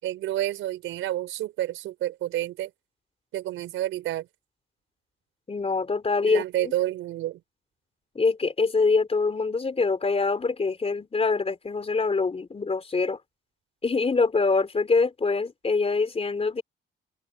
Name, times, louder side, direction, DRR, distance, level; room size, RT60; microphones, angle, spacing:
voice 1, 0.0-2.7 3.3-4.3 6.3-7.4, right 14 dB, 85° right, 5.1 m, -29 dB
voice 2, 5.5-6.7 8.2-13.2 13.8-16.6, left 4 dB, 30° left, 4.0 m, -24 dB
open air
cardioid pair, 90°, 20 cm